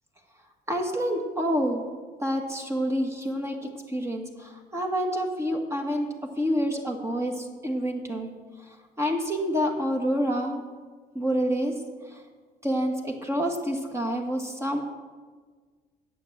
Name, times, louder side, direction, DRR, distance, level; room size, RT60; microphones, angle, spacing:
voice 1, 0.7-1.8 2.2-6.1 6.4-8.3 8.7-10.6 11.1-11.7 12.0-12.2 12.6-14.8, equal, 15° right, 2 dB, 1.7 m, -28 dB
9.0 x 8.0 x 7.4 m, 1.5 s
cardioid pair, 110°, 17 cm